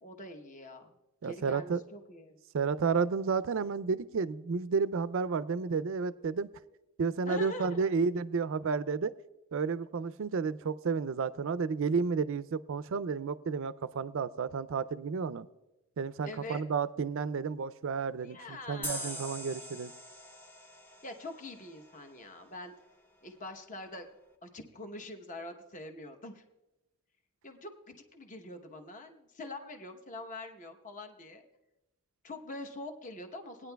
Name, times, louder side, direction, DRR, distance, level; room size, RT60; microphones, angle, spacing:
voice 1, 0.0-0.9 1.2-2.4 7.2-8.0 16.2-16.6 18.2-19.6 21.0-22.7 23.2-24.1 24.4-26.4 27.4-31.4 32.2-33.7, left 2 dB, 35° left, 5 dB, 0.9 m, -44 dB
voice 2, 1.2-1.8 2.5-6.5 7.0-9.1 9.5-15.5 16.0-19.9, right 5 dB, 60° right, 16 dB, 0.4 m, -31 dB
sound 1, 18.8-22.2, equal, 10° left, 0.7 m, -43 dB
19.0 x 9.8 x 2.3 m, 0.98 s
head